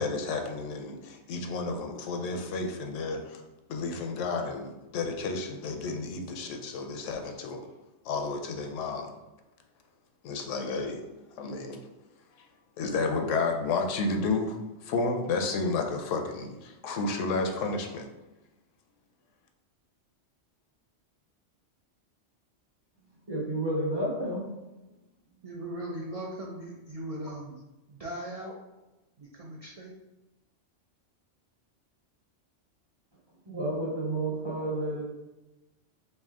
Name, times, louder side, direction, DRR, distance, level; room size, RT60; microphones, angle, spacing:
voice 1, 0.0-3.4 3.7-7.7 8.0-9.1 10.2-11.0 11.4-11.8 12.8-14.6 14.8-18.1, left 3 dB, 80° left, 4 dB, 0.9 m, -31 dB
voice 2, 23.3-24.4 33.5-35.0, right 1 dB, 25° right, -4 dB, 0.6 m, -30 dB
voice 3, 25.4-27.6 27.9-28.6 29.2-29.9, right 1 dB, 65° right, -2 dB, 0.3 m, -39 dB
3.3 x 2.6 x 3.5 m, 1.0 s
omnidirectional pair, 1.3 m